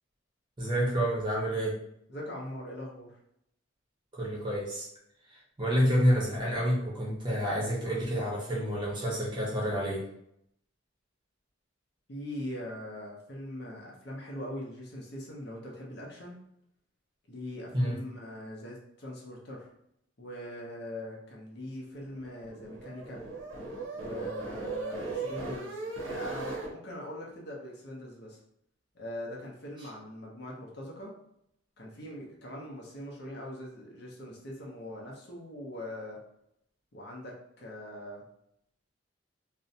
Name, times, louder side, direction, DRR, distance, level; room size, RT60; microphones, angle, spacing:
voice 1, 0.6-1.8 4.1-4.9 5.3-10.0 17.7-18.0, equal, 25° right, -5 dB, 0.7 m, -29 dB
voice 2, 2.1-3.2 12.1-16.4 17.3-19.7 20.2-23.3 23.9-28.4 28.9-31.1 31.8-36.2 36.9-38.2, left 1 dB, 55° left, -3 dB, 0.6 m, -41 dB
sound 1, 22.0-26.7, right 3 dB, 75° right, 0.6 m, -38 dB
2.6 x 2.1 x 2.6 m, 0.75 s
head